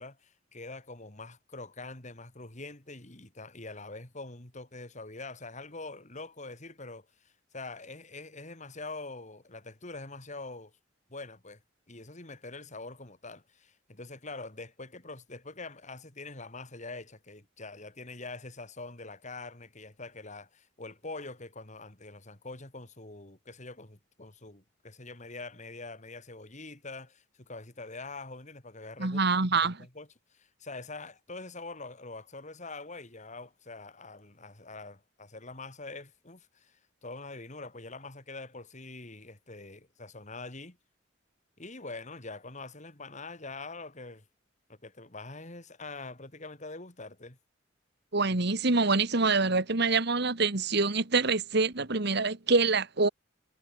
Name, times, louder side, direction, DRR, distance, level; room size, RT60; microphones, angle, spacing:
voice 1, 0.0-10.7 11.1-11.6 11.9-40.8 41.6-44.2 44.7-47.4, left 3 dB, 40° left, 3.1 m, -44 dB
voice 2, 29.0-29.8 48.1-53.1, right 3 dB, 55° right, 1.8 m, -26 dB
head